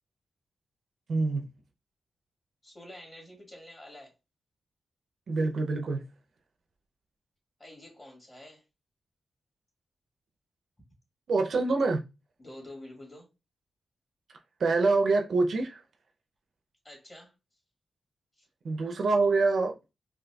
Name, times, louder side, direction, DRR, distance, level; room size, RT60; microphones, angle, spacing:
voice 1, 1.1-1.5 5.3-6.0 11.3-12.0 14.6-15.8 18.6-19.7, right 3 dB, 65° right, 0.5 m, -25 dB
voice 2, 2.6-4.1 7.6-8.6 12.4-13.3 16.8-17.3 18.4-18.5, left 1 dB, 25° left, 1.6 m, -48 dB
4.0 x 2.5 x 2.2 m
wide cardioid pair, 105°, 0 cm